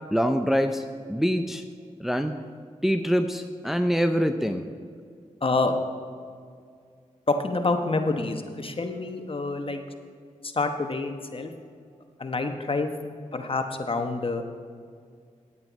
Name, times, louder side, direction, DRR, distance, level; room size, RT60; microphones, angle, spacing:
voice 1, 0.1-0.8 1.1-1.6 2.0-2.4 2.8-4.6, equal, ahead, 7 dB, 0.6 m, -24 dB
voice 2, 5.4-5.7 7.3-9.8 10.4-11.5 12.2-12.9 13.3-14.4, left 3 dB, 40° left, 6 dB, 1.0 m, -27 dB
9.7 x 8.7 x 4.1 m, 2.2 s
cardioid pair, 45°, 14 cm